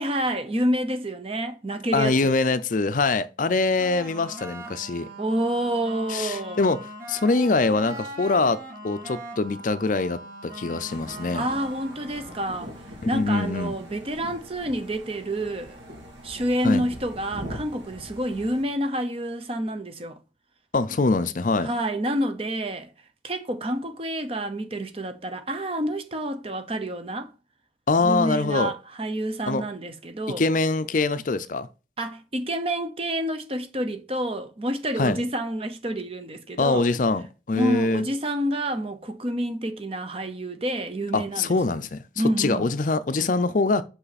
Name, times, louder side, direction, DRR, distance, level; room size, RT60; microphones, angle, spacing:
voice 1, 0.0-2.3 5.2-6.6 11.3-12.7 13.0-15.8 16.2-20.2 21.6-22.9 23.2-27.3 28.0-30.4 32.0-36.9 37.5-41.6 42.2-42.7, right 1 dB, 30° right, 0.9 m, -28 dB
voice 2, 1.9-5.1 6.1-6.8 7.1-11.5 13.0-13.7 16.6-16.9 20.7-21.7 27.9-28.7 29.5-29.6 30.4-31.7 35.0-35.2 36.6-38.1 41.1-42.0 42.4-43.8, left 3 dB, 45° left, 0.5 m, -23 dB
sound 1, 3.8-12.6, right 1 dB, 50° right, 2.9 m, -41 dB
sound 2, 10.9-18.6, equal, 85° right, 2.6 m, -42 dB
5.6 x 5.6 x 4.1 m
head